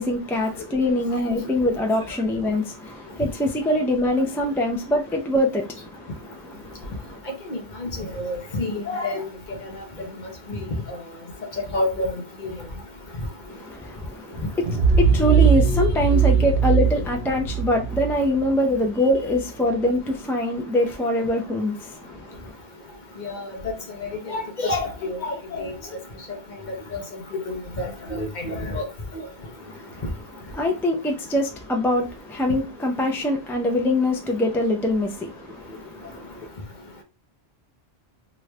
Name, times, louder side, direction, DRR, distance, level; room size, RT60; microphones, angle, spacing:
voice 1, 0.0-7.2 13.5-22.5 29.6-30.0 30.5-36.5, left 1 dB, 5° left, 0.3 m, -24 dB
voice 2, 8.1-9.2 10.5-10.6 10.9-11.0 11.7-12.1 12.4-12.5 23.2-23.4 24.0-25.7 26.7-27.0 27.4-28.8, left 2 dB, 50° left, 0.9 m, -28 dB
sound 1, 14.6-19.4, right 6 dB, 70° right, 0.9 m, -20 dB
3.0 x 2.4 x 3.2 m
omnidirectional pair, 1.1 m